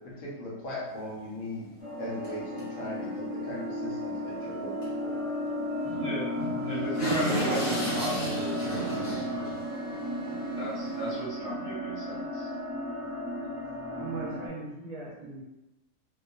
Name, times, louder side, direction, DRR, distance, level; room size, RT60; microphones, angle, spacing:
voice 1, 0.0-1.7 2.0-5.2, left 1 dB, 75° left, -4 dB, 1.1 m, -39 dB
sound 1, 0.9-1.0 1.4-1.5 2.2-2.3 2.6-2.7 3.0-3.1 4.8-4.9 5.2-5.3 5.8-11.2, right 1 dB, 50° left, 0.9 m, -35 dB
sound 2, 1.8-14.5, left 1 dB, 20° right, 0.4 m, -34 dB
voice 2, 6.6-9.4 10.5-12.5, right 2 dB, 45° right, -9 dB, 1.1 m, -35 dB
voice 3, 14.0-15.4, right 3 dB, 70° right, -4 dB, 1.0 m, -39 dB
2.8 x 2.0 x 2.4 m, 0.97 s
omnidirectional pair, 1.6 m